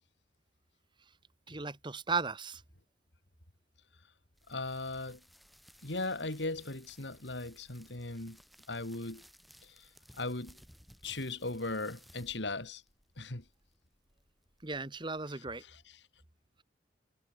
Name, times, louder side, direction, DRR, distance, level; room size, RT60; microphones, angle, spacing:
voice 1, 1.5-2.6 14.6-15.6, right 4 dB, 25° right, 1.3 m, -36 dB
sound 1, 4.3-15.3, equal, ahead, 5.6 m, -60 dB
voice 2, 4.5-5.2 5.8-8.4 8.7-9.2 9.6-9.9 10.2-10.6 11.0-12.8 13.2-13.4 15.3-16.0, left 2 dB, 85° left, 3.0 m, -38 dB
head